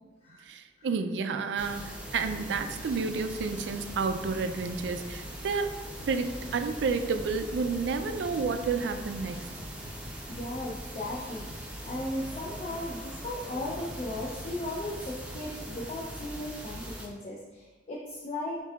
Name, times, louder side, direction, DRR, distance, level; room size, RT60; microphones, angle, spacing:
voice 1, 0.4-5.7 6.1-9.5, right 4 dB, 70° right, 8 dB, 0.3 m, -30 dB
sound 1, 1.5-17.1, right 1 dB, 5° right, 0.6 m, -41 dB
sound 2, 3.8-5.1 6.0-12.7 13.7-15.9, left 1 dB, 85° left, 0.6 m, -48 dB
voice 2, 10.3-11.5 11.8-18.6, left 1 dB, 40° left, -3 dB, 0.4 m, -37 dB
6.6 x 2.7 x 2.3 m, 1.3 s
head